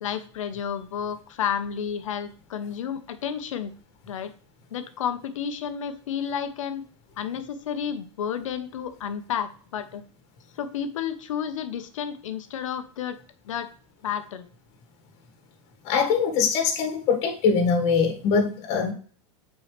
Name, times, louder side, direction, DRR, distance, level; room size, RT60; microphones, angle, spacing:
voice 1, 0.0-3.7 4.1-4.3 4.7-6.8 7.2-10.0 10.6-13.2 13.5-13.7 14.0-14.5, left 8 dB, 85° left, 9 dB, 1.0 m, -31 dB
voice 2, 15.8-18.9, left 5 dB, 40° left, 3 dB, 1.9 m, -22 dB
8.5 x 4.6 x 3.3 m, 0.42 s
supercardioid pair, 145°, 16 cm